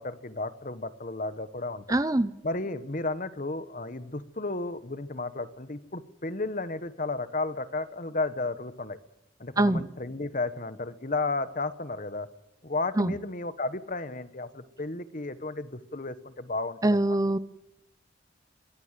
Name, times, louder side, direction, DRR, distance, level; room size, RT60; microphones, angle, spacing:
voice 1, 0.0-1.8 2.4-9.0 9.4-12.3 12.6-17.0, left 3 dB, 45° left, 13 dB, 1.3 m, -33 dB
voice 2, 1.9-2.3 9.6-9.8 13.0-13.1 16.8-17.4, right 1 dB, 20° right, 15 dB, 0.7 m, -23 dB
23.5 x 18.0 x 7.6 m, 0.92 s
head